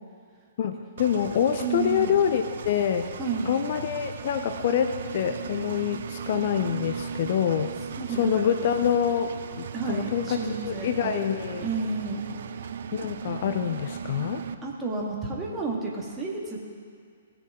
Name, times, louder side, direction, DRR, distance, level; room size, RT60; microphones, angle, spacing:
voice 1, 0.6-3.1 3.5-7.7 8.2-10.4 10.7-11.7 12.9-14.4, left 8 dB, 45° left, 8 dB, 0.5 m, -26 dB
Engine, 1.0-14.5, right 7 dB, 55° right, 0.5 m, -37 dB
voice 2, 1.6-2.2 3.2-3.5 8.0-8.5 9.7-11.3 11.6-12.2 14.6-16.6, right 4 dB, 15° right, -3 dB, 1.9 m, -31 dB
18.0 x 6.9 x 3.7 m, 2.2 s
figure-of-eight pair, 120°, 0 cm